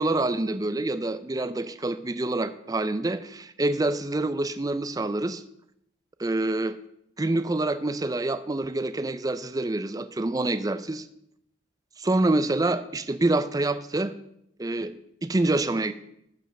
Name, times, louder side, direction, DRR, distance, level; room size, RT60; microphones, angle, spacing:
voice 1, 0.0-5.4 6.2-6.8 7.2-11.1 12.0-14.1 14.6-14.9 15.2-15.9, right 2 dB, 20° right, 12 dB, 0.4 m, -26 dB
13.0 x 5.5 x 6.6 m, 0.76 s
head